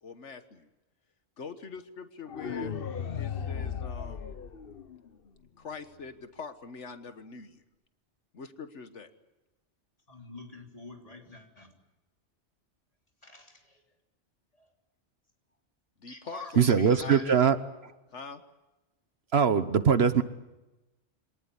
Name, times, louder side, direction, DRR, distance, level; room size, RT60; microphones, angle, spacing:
voice 1, 0.0-0.7 1.4-2.8 3.2-4.4 5.6-7.6 8.3-9.1 16.0-17.5 18.1-18.4, left 4 dB, 80° left, 9 dB, 1.6 m, -43 dB
sound 1, 2.3-5.3, left 7 dB, 55° left, 1.2 m, -36 dB
voice 2, 10.1-11.7 13.2-13.8 14.6-14.7 16.1-17.3, left 2 dB, 30° left, 2 dB, 3.5 m, -46 dB
voice 3, 16.6-17.6 19.3-20.2, right 7 dB, 60° right, 12 dB, 1.3 m, -22 dB
25.0 x 18.5 x 9.8 m, 1.0 s
omnidirectional pair, 1.2 m